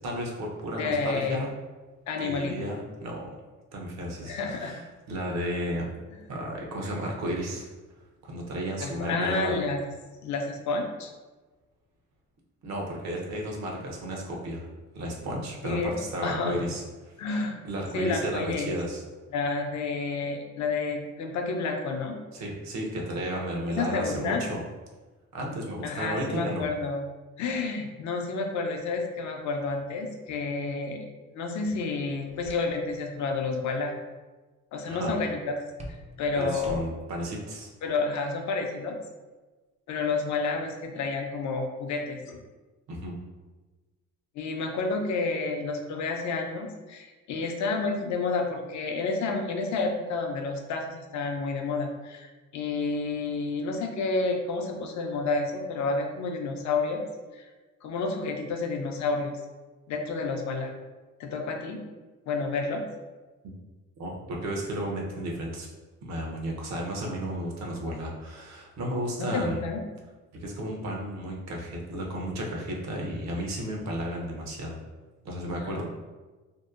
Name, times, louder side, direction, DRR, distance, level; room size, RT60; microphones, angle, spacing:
voice 1, 0.0-1.5 2.2-3.3 3.7-5.9 6.3-7.7 8.2-9.6 12.6-14.7 14.9-17.1 17.6-19.0 22.3-24.6 25.3-26.7 34.9-35.1 36.3-37.7 42.9-43.1 64.0-65.7 66.0-69.6 70.4-74.8 75.2-75.8, right 1 dB, 65° right, -1 dB, 0.6 m, -33 dB
voice 2, 0.8-1.4 2.1-2.6 4.3-4.7 8.8-9.8 10.2-11.1 15.6-16.0 16.2-16.5 17.2-17.6 17.9-18.7 19.3-22.2 23.8-24.4 25.8-27.0 27.4-31.0 31.3-33.9 34.7-35.6 35.9-36.8 37.8-39.0 39.9-42.4 44.4-57.0 57.3-57.5 57.8-59.3 59.9-60.7 61.2-61.8 62.3-62.8 69.2-69.8 75.6-75.8, left 3 dB, 70° left, 3 dB, 0.5 m, -30 dB
sound 1, 32.0-33.0 33.3-33.7 35.8-37.2, equal, 25° right, 0.3 m, -45 dB
2.7 x 2.1 x 2.3 m, 1.2 s
cardioid pair, 90°, 30 cm